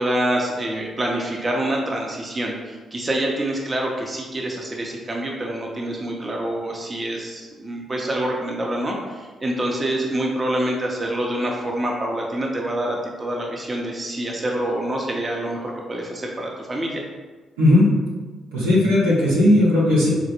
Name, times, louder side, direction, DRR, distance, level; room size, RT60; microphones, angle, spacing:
voice 1, 0.0-17.0, right 1 dB, 30° right, -1 dB, 0.7 m, -26 dB
voice 2, 18.5-20.1, left 1 dB, 90° right, -7 dB, 0.9 m, -16 dB
4.0 x 2.1 x 2.9 m, 1.3 s
hypercardioid pair, 45°, 0 cm